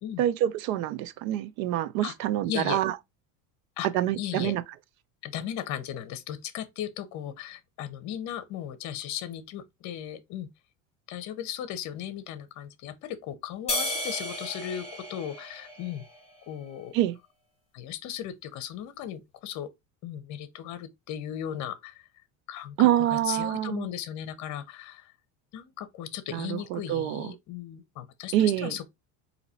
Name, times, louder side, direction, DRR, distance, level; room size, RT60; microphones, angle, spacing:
voice 1, 0.2-2.9 3.9-4.6 16.9-17.2 22.8-23.9 26.3-27.3 28.3-28.8, right 12 dB, 80° right, 0.7 m, -26 dB
voice 2, 2.5-2.8 3.8-3.9 4.2-4.5 5.2-10.5 11.1-16.0 16.5-16.9 17.7-19.7 20.0-22.0 22.5-25.1 25.5-28.9, left 10 dB, 45° left, 0.8 m, -36 dB
sound 1, 13.7-16.3, left 1 dB, 15° left, 2.4 m, -34 dB
4.0 x 2.8 x 4.1 m
supercardioid pair, 140°, 41 cm